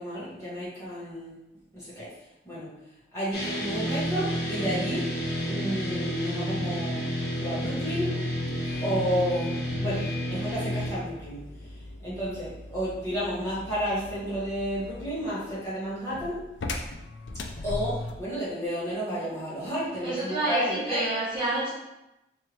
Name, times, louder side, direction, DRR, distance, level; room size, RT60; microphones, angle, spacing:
voice 1, 0.0-1.4 1.7-2.1 2.4-2.7 3.1-5.0 5.5-7.0 7.4-8.1 8.8-11.4 12.0-16.4 17.6-21.1, equal, 15° left, -11 dB, 1.5 m, -31 dB
sound 1, 3.3-10.9, equal, 65° left, 1.1 m, -30 dB
sound 2, 8.4-18.3, left 2 dB, 85° left, 0.4 m, -40 dB
voice 2, 20.0-21.7, right 2 dB, 25° right, -9 dB, 1.0 m, -28 dB
3.4 x 3.2 x 3.1 m, 0.91 s
head